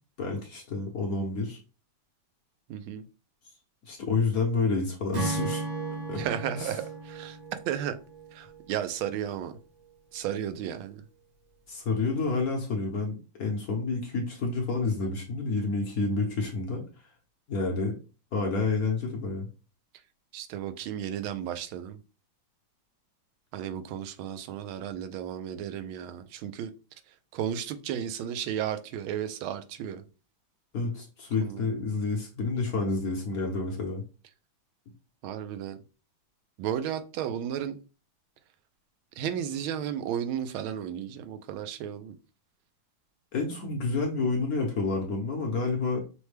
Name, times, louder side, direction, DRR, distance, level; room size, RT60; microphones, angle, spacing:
voice 1, 0.2-1.6 3.8-5.6 6.1-6.2 6.6-6.7 11.7-16.8 17.5-18.0 18.3-19.5 30.7-34.0 43.3-46.0, left 3 dB, 60° left, 1.1 m, -29 dB
voice 2, 2.7-3.0 6.1-7.4 7.7-8.0 8.3-9.6 10.1-11.0 20.3-22.0 23.5-26.7 27.3-30.0 31.4-31.7 35.2-35.8 36.6-37.8 39.2-42.1, right 9 dB, 90° right, 1.4 m, -33 dB
Acoustic guitar / Strum, 5.1-8.6, right 3 dB, 40° right, 0.5 m, -35 dB
6.0 x 2.2 x 3.2 m
omnidirectional pair, 2.2 m